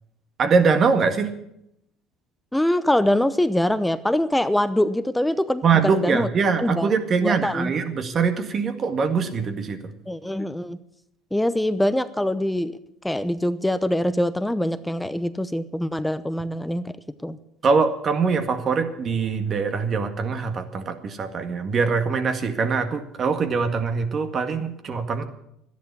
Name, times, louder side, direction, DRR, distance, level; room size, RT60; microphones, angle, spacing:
voice 1, 0.4-1.3 5.6-9.9 17.6-25.2, right 5 dB, 45° right, 7 dB, 1.9 m, -23 dB
voice 2, 2.5-6.3 6.6-6.9 7.2-7.7 10.1-10.8 11.3-12.8 13.0-17.0 17.2-17.4, left 1 dB, 5° left, 13 dB, 0.8 m, -23 dB
13.0 x 10.5 x 8.4 m, 0.79 s
hypercardioid pair, 75°, 0 cm